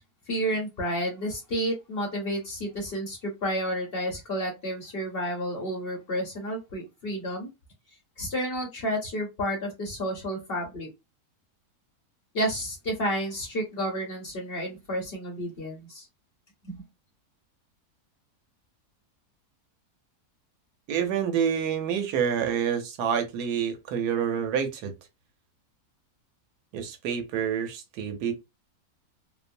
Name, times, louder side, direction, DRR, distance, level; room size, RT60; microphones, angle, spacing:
voice 1, 0.3-7.5 8.2-10.9 12.3-16.1 16.6-16.8, equal, 50° left, 0.8 m, -31 dB
voice 2, 20.9-24.9 26.7-28.3, right 7 dB, 90° right, 1.2 m, -27 dB
3.0 x 2.0 x 2.5 m
omnidirectional pair, 1.6 m